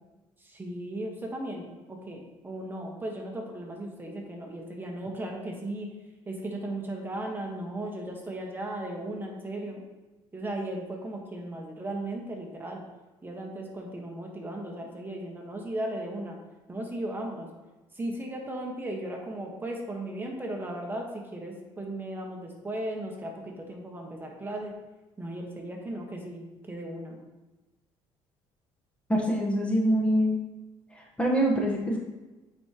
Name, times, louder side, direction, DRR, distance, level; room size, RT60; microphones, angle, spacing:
voice 1, 0.4-5.9 6.3-9.8 10.3-12.8 13.2-16.4 16.7-17.5 17.9-24.7 25.2-27.2, right 1 dB, 20° right, 0 dB, 1.3 m, -36 dB
voice 2, 29.1-30.4 30.9-32.0, equal, 10° left, -1 dB, 1.1 m, -25 dB
8.6 x 4.7 x 2.9 m, 1.1 s
cardioid pair, 100°, 11 cm